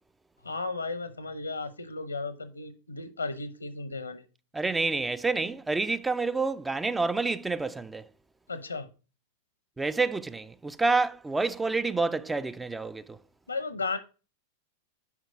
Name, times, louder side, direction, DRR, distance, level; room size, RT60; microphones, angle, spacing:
voice 1, 0.4-4.2 8.5-8.9 13.5-14.0, left 3 dB, 80° left, 0.9 m, -34 dB
voice 2, 4.5-8.1 9.8-13.2, right 3 dB, 10° right, 0.4 m, -28 dB
7.3 x 5.2 x 5.0 m
figure-of-eight pair, 90°, 0 cm